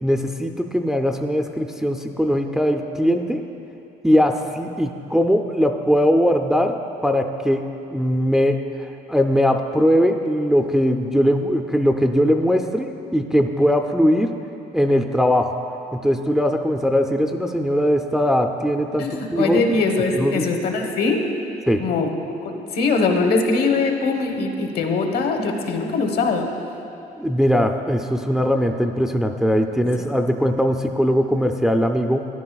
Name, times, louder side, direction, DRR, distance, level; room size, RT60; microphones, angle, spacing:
voice 1, 0.0-3.4 4.0-7.6 7.9-8.6 9.1-14.3 14.7-15.5 15.9-19.6 20.1-20.5 21.7-21.8 27.2-32.3, equal, 5° right, 4 dB, 0.4 m, -20 dB
voice 2, 19.0-21.3 21.8-22.1 22.4-26.5, left 3 dB, 65° left, 3 dB, 1.1 m, -22 dB
13.5 x 10.5 x 2.3 m, 2.8 s
cardioid pair, 110°, 17 cm